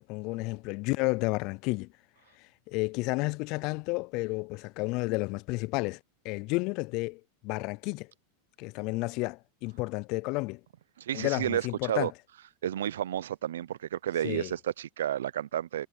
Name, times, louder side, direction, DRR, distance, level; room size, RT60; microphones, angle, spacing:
voice 1, 0.1-1.9 2.7-6.0 6.2-8.1 8.6-10.6 11.1-12.1 14.2-14.5, left 25 dB, 50° left, 0.4 m, -31 dB
voice 2, 11.0-12.1 12.6-15.9, right 11 dB, 85° right, 0.6 m, -31 dB
hypercardioid pair, 120°, 0 cm